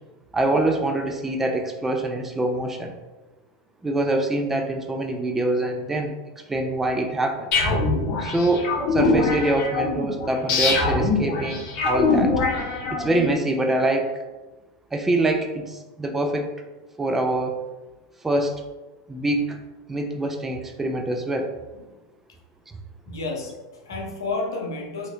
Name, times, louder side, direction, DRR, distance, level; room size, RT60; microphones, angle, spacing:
voice 1, 0.3-3.0 3.8-7.5 8.2-12.3 12.9-14.1 14.9-16.5 17.0-17.6 18.2-18.6 19.1-19.6 19.9-21.6, right 2 dB, 15° right, 4 dB, 0.4 m, -24 dB
sound 1, 7.5-13.3, left 3 dB, 50° left, 0.8 m, -23 dB
voice 2, 23.1-25.1, left 3 dB, 85° left, 0 dB, 0.7 m, -31 dB
2.9 x 2.8 x 2.9 m, 1.1 s
hypercardioid pair, 100°, 2 cm